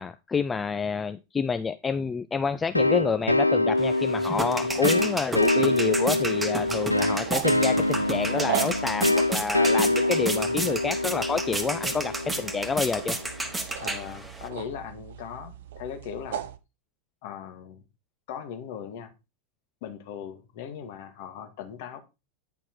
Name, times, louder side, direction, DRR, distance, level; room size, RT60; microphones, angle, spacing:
voice 1, 0.0-13.2, left 5 dB, 15° left, 0.4 m, -28 dB
sound 1, 2.7-13.2, left 2 dB, 85° left, 0.4 m, -25 dB
sound 2, 3.8-14.5, right 2 dB, 10° right, 1.3 m, -32 dB
sound 3, 6.6-16.6, right 10 dB, 55° right, 0.6 m, -38 dB
voice 2, 13.8-16.4 17.2-17.8 18.3-19.1 19.8-22.0, left 8 dB, 50° left, 1.6 m, -39 dB
9.7 x 4.4 x 4.4 m
figure-of-eight pair, 90°, 0 cm